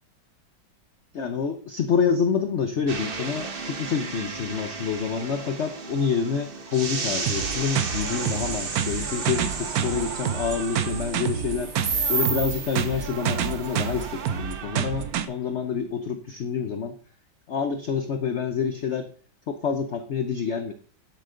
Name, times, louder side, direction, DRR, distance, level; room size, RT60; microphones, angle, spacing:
voice 1, 1.1-11.7 12.1-17.0 17.5-19.1 19.5-20.7, left 6 dB, 55° left, 8 dB, 0.8 m, -27 dB
sound 1, 2.9-15.9, right 4 dB, 35° right, 1.1 m, -33 dB
sound 2, 7.3-15.3, right 8 dB, 65° right, 1.1 m, -29 dB
10.0 x 8.3 x 3.8 m, 0.42 s
omnidirectional pair, 2.0 m